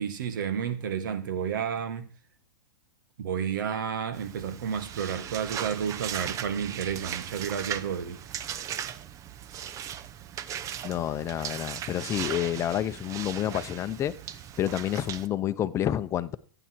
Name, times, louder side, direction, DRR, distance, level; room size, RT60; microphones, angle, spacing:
voice 1, 0.0-2.1 3.2-8.2, right 7 dB, 75° right, 2.0 m, -31 dB
sound 1, 4.1-15.3, right 9 dB, 30° right, 0.8 m, -38 dB
voice 2, 10.8-14.1 14.6-16.4, left 11 dB, 25° left, 0.9 m, -29 dB
15.0 x 9.0 x 4.7 m
hypercardioid pair, 125°, 11 cm